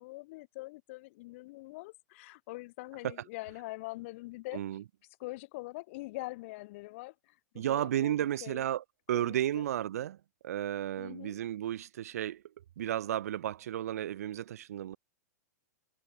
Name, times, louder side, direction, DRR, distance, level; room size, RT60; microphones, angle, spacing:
voice 1, 0.0-4.6 5.2-8.7 9.1-9.6 11.0-11.4, left 21 dB, 45° left, 1.5 m, -44 dB
voice 2, 7.6-10.2 10.4-12.4 12.8-15.0, right 11 dB, 55° right, 0.5 m, -33 dB
figure-of-eight pair, 105°, 10 cm